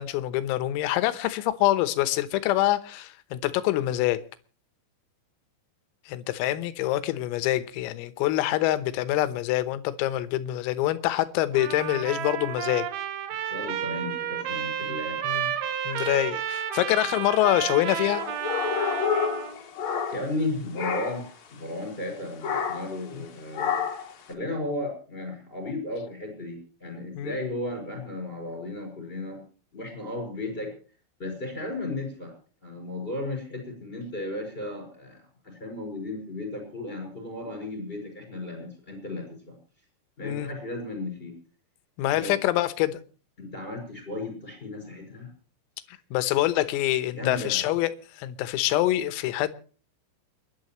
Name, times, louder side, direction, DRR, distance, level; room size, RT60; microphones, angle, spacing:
voice 1, 0.0-4.2 6.1-12.9 15.2-15.6 15.9-18.2 23.1-23.2 27.2-27.4 40.2-40.5 42.0-43.0 46.1-49.5, left 15 dB, 85° left, 3.8 m, -25 dB
Trumpet, 11.5-19.6, right 10 dB, 70° right, 3.6 m, -31 dB
voice 2, 13.5-15.2 19.0-19.1 20.1-21.2 21.5-23.8 24.3-29.4 29.7-30.8 31.2-32.3 32.6-39.6 40.2-41.3 42.1-42.3 43.4-45.3 47.1-47.6, left 2 dB, 10° left, 6.3 m, -34 dB
sound 1, 18.0-20.5 20.8-21.3 22.4-23.0 23.5-24.1, left 6 dB, 55° left, 3.1 m, -29 dB
29.5 x 11.5 x 3.1 m
omnidirectional pair, 6.0 m